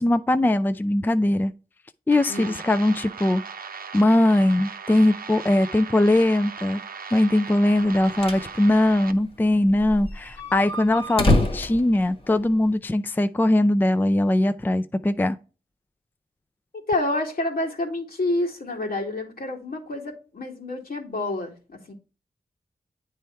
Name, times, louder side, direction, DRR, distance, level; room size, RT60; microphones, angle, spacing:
voice 1, 0.0-1.5 2.1-3.4 3.9-6.8 7.1-15.4, left 1 dB, 10° left, 0.4 m, -21 dB
sound 1, 2.1-9.1, right 5 dB, 70° right, 0.7 m, -38 dB
voice 2, 2.3-2.6 16.9-21.9, left 2 dB, 75° left, 2.0 m, -28 dB
sound 2, 7.9-8.5 8.8-8.9 9.1-9.2 9.7-12.7, left 1 dB, 40° left, 1.4 m, -25 dB
9.1 x 3.4 x 4.4 m
cardioid pair, 60°, 16 cm